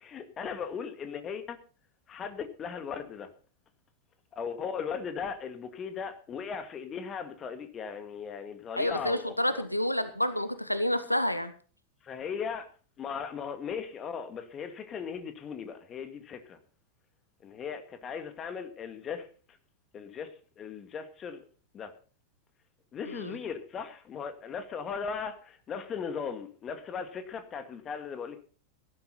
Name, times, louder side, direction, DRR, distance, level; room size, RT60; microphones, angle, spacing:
voice 1, 0.0-1.6 2.1-3.3 4.4-9.6 12.0-12.7 13.0-16.6 17.4-19.3 19.9-21.4 21.7-21.9 22.9-28.4, left 6 dB, 25° left, 9 dB, 2.1 m, -38 dB
voice 2, 8.8-11.5 23.1-23.3, left 1 dB, 90° left, 13 dB, 1.1 m, -29 dB
17.5 x 12.0 x 4.2 m, 0.39 s
figure-of-eight pair, 90°, 0 cm